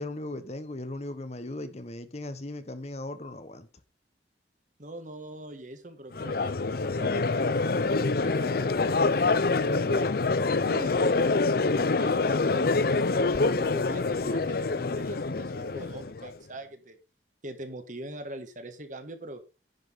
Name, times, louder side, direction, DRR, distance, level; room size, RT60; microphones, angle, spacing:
voice 1, 0.0-3.7, left 2 dB, 35° left, 1.1 m, -37 dB
voice 2, 4.8-6.6 7.0-10.1 10.7-11.3 11.9-17.0 17.4-19.4, right 1 dB, 45° right, 1.7 m, -42 dB
Crowd, 6.1-16.3, left 3 dB, 55° left, 0.6 m, -26 dB
10.5 x 5.9 x 5.9 m
head